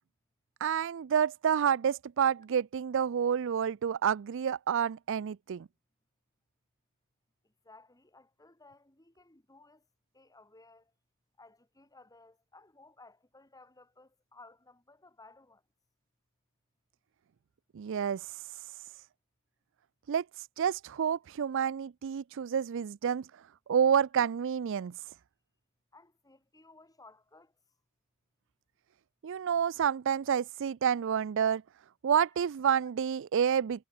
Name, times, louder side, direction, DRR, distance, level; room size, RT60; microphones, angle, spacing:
voice 1, 0.6-5.7 17.7-18.2 20.1-20.2 20.6-23.3 23.7-24.9 29.2-31.6 32.0-33.8, right 8 dB, 60° right, 0.4 m, -29 dB
voice 2, 7.4-9.9 10.1-10.9 11.4-15.6 25.9-27.5, left 3 dB, 15° left, 2.3 m, -58 dB
head